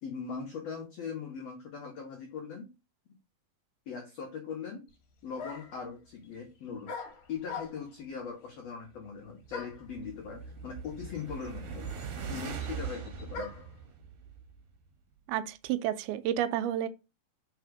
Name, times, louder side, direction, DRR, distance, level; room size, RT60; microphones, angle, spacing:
voice 1, 0.0-2.7 3.9-4.8 5.2-6.9 7.3-11.9 12.1-13.5, left 6 dB, 85° left, 1.4 m, -40 dB
sound 1, 4.9-5.0 5.4-5.8 6.9-8.0 9.5-9.9 10.8-10.9 11.1-13.8, left 4 dB, 55° left, 2.1 m, -42 dB
sound 2, 9.3-14.7, right 6 dB, 65° right, 2.2 m, -41 dB
voice 2, 15.3-16.9, right 11 dB, 90° right, 2.5 m, -30 dB
4.9 x 4.2 x 4.8 m
omnidirectional pair, 4.3 m